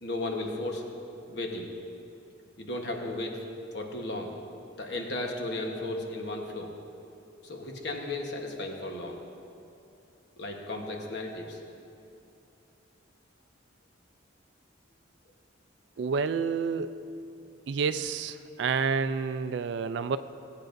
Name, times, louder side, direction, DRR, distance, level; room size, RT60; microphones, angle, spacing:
voice 1, 0.0-0.8 1.3-1.7 2.6-3.4 3.7-4.3 4.8-6.7 7.4-9.2 10.4-11.6, left 2 dB, 55° left, 1 dB, 1.1 m, -35 dB
voice 2, 16.0-16.9 17.7-20.2, right 5 dB, 60° right, 12 dB, 0.3 m, -29 dB
17.5 x 8.6 x 2.6 m, 2.7 s
head